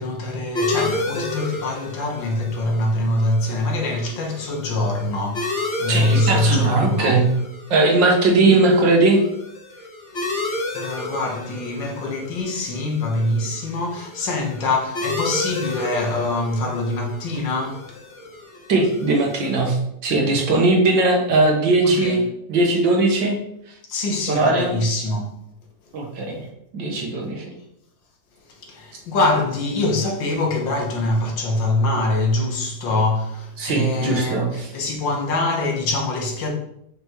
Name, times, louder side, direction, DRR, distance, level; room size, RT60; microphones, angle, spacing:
voice 1, 0.0-7.2 8.4-8.7 10.2-18.0 21.8-22.2 23.9-25.3 28.6-36.5, left 2 dB, 80° left, 1.8 m, -24 dB
sound 1, 0.5-19.7, left 2 dB, 40° left, 1.3 m, -32 dB
voice 2, 5.9-7.2 7.7-9.2 18.7-22.2 22.5-23.4 24.3-24.7 25.9-26.4 26.7-27.5 33.6-34.7, right 2 dB, 80° right, 1.9 m, -19 dB
6.0 x 5.4 x 3.0 m
omnidirectional pair, 2.0 m